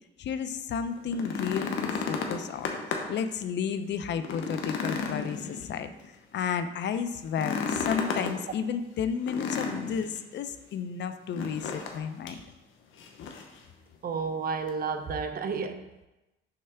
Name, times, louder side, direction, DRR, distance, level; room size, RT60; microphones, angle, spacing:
voice 1, 0.2-2.7 3.1-5.9 6.3-12.4, left 7 dB, 65° left, 10 dB, 0.5 m, -32 dB
sound 1, 1.0-3.2 3.6-3.7 4.2-6.1 7.3-8.4 9.3-10.2 11.3-12.0 12.3-12.4 13.0-13.6 14.7-14.8, left 5 dB, 80° left, 0.9 m, -33 dB
voice 2, 14.0-16.1, right 5 dB, 50° right, 8 dB, 0.7 m, -32 dB
6.6 x 3.3 x 5.6 m, 0.98 s
cardioid pair, 90°, 20 cm